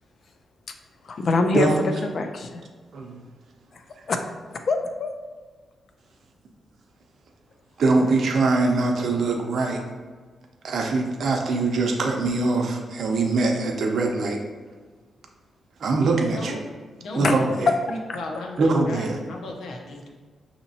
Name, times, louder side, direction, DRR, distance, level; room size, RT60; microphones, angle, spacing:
voice 1, 1.0-1.7 2.0-2.6 3.7-3.8 4.1-4.2 4.5-5.1 8.0-8.1 17.2-17.3 18.1-18.2, left 3 dB, 50° left, 6 dB, 0.4 m, -25 dB
voice 2, 7.8-9.8 10.6-14.4 15.8-16.6 17.1-17.7 18.6-19.2, right 3 dB, 65° right, 2 dB, 0.6 m, -22 dB
voice 3, 17.0-20.1, left 1 dB, 90° left, 1 dB, 0.7 m, -35 dB
6.1 x 2.8 x 2.8 m, 1.4 s
wide cardioid pair, 125°, 0 cm